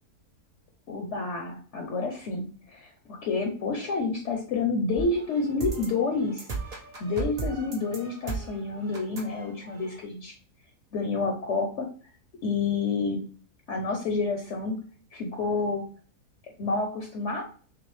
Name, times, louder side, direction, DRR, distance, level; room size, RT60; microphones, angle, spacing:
voice 1, 0.9-6.5 7.0-10.3 10.9-11.9 12.4-13.2 13.7-14.8 15.1-15.8 16.6-17.4, left 3 dB, 60° left, 2 dB, 1.0 m, -29 dB
sound 1, 5.0-10.0, right 4 dB, 40° right, 0.6 m, -36 dB
5.9 x 2.1 x 3.2 m, 0.41 s
omnidirectional pair, 1.6 m